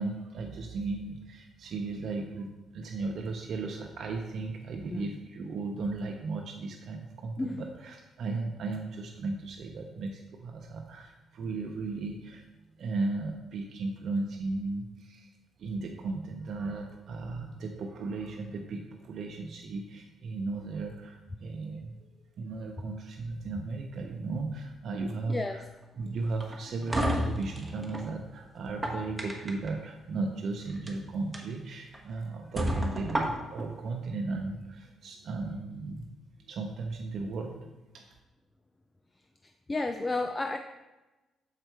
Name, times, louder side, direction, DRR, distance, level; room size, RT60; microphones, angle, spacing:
voice 1, 0.0-12.4 12.8-15.3 15.6-21.9 22.4-25.6 26.0-36.1 36.5-38.1, right 3 dB, 60° right, 2 dB, 0.7 m, -36 dB
sound 1, 26.4-28.1 28.6-29.7 30.7-30.9 31.3-31.4 31.9-32.0 32.6-33.7, equal, 10° right, 1.1 m, -31 dB
voice 2, 39.7-40.6, left 2 dB, 20° left, 7 dB, 0.4 m, -31 dB
6.6 x 4.4 x 4.6 m, 1.1 s
cardioid pair, 90°, 0 cm